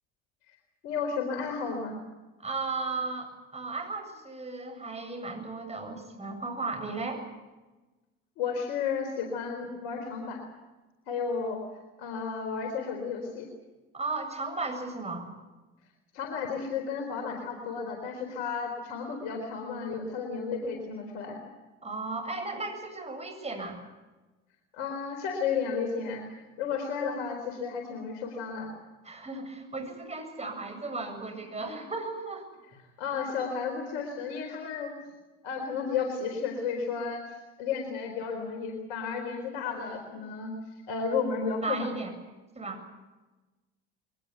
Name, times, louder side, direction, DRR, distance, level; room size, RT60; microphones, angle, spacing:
voice 1, 0.8-2.0 8.4-10.4 11.1-11.6 12.0-13.5 16.1-21.4 24.7-28.7 33.0-34.9 35.4-40.5 40.9-41.9, left 5 dB, 75° left, 3 dB, 4.2 m, -33 dB
voice 2, 2.4-7.2 13.9-15.2 21.8-23.8 29.0-32.4 41.6-42.1 42.5-42.8, right 3 dB, 20° right, 5 dB, 7.8 m, -35 dB
22.5 x 20.0 x 8.1 m, 1.1 s
hypercardioid pair, 70°, 34 cm